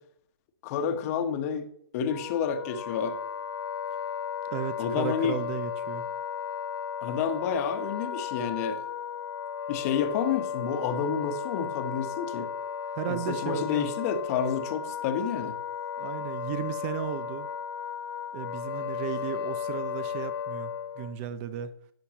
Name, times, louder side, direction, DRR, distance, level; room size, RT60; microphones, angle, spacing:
voice 1, 0.6-1.7 1.9-3.2 4.8-5.4 7.0-8.8 9.7-12.5 13.1-15.5, left 7 dB, 35° left, 9 dB, 1.2 m, -29 dB
Wind instrument woodwind instrument, 2.0-21.1, left 7 dB, 70° left, 1.8 m, -35 dB
voice 2, 4.5-6.1 12.8-13.9 16.0-17.5 18.3-21.7, right 10 dB, 30° right, 14 dB, 0.7 m, -35 dB
13.0 x 9.7 x 3.0 m, 0.70 s
hypercardioid pair, 135°, 13 cm